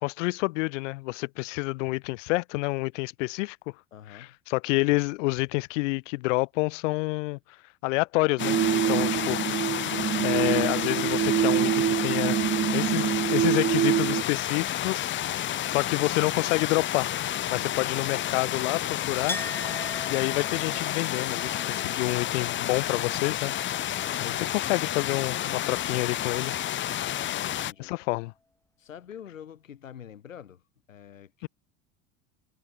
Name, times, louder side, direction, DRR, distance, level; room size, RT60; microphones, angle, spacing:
voice 1, 0.0-3.6 4.1-7.4 7.8-9.4 10.2-12.4 12.7-15.1 15.4-17.1 17.5-19.4 20.1-23.5 24.2-26.6 27.8-28.3 31.4-31.5, left 24 dB, 70° left, 0.7 m, -28 dB
voice 2, 3.9-4.4 9.0-9.6 17.5-17.9 23.9-24.6 27.2-27.9 28.8-30.6 30.9-31.5, left 9 dB, 90° left, 2.4 m, -46 dB
sound 1, 8.4-27.7, left 12 dB, 30° left, 0.6 m, -30 dB
sound 2, 8.4-14.2, right 11 dB, 30° right, 0.6 m, -25 dB
Chink clink, 19.3-24.8 25.1-26.0, left 1 dB, 5° left, 1.8 m, -42 dB
hypercardioid pair, 80°, 38 cm